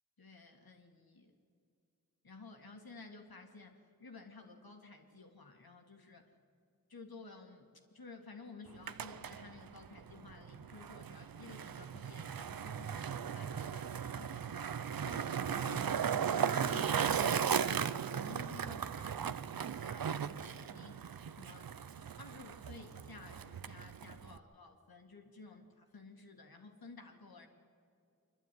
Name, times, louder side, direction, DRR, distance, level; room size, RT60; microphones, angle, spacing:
voice 1, 0.2-1.3 2.2-6.3 6.9-7.7 7.9-14.8 15.0-21.7 22.2-27.5, left 3 dB, 85° left, 3 dB, 2.2 m, -54 dB
Skateboard, 8.7-24.4, right 7 dB, 75° right, 0.6 m, -37 dB
26.0 x 12.0 x 9.3 m, 2.4 s
wide cardioid pair, 60°, 36 cm